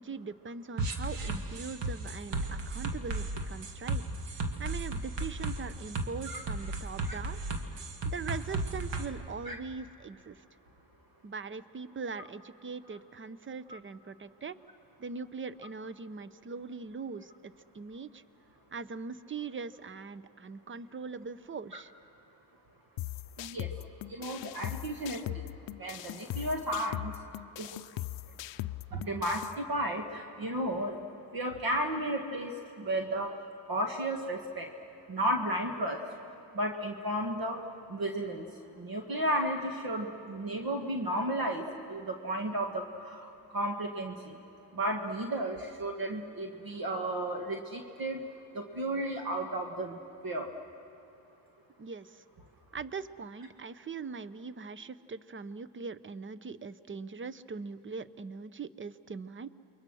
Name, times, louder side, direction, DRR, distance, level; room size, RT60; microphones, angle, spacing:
voice 1, 0.0-4.0 4.6-7.4 8.0-10.4 11.2-14.6 15.0-18.2 18.7-21.9 51.8-52.2 52.7-59.5, right 5 dB, 30° right, 15 dB, 0.8 m, -41 dB
sound 1, 0.8-9.0, right 2 dB, 75° right, 2.0 m, -34 dB
sound 2, 23.0-29.6, left 15 dB, 75° left, 0.6 m, -40 dB
voice 2, 23.4-23.7 24.1-25.5 25.8-27.2 27.6-27.8 28.9-31.1 31.3-33.3 33.7-34.7 35.1-36.0 36.5-37.6 37.9-44.4 44.7-48.2 48.5-50.5, right 1 dB, 55° right, 3 dB, 1.9 m, -33 dB
29.0 x 23.0 x 6.3 m, 2.9 s
cardioid pair, 80°, 43 cm